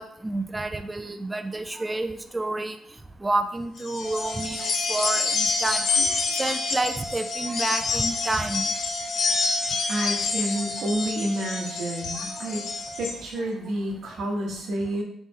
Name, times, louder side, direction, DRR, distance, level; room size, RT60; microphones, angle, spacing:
voice 1, 0.0-2.8 3.2-6.1 6.4-8.7 12.1-12.2 12.5-12.6, right 2 dB, 15° right, 8 dB, 0.4 m, -29 dB
sound 1, 3.8-13.2, left 4 dB, 70° left, 0.6 m, -28 dB
sound 2, 4.0-13.1, right 3 dB, 45° left, 1.2 m, -39 dB
voice 2, 9.9-12.7 13.0-15.0, right 1 dB, 70° right, 0 dB, 1.1 m, -29 dB
4.1 x 3.7 x 3.0 m, 0.67 s
cardioid pair, 90°, 0 cm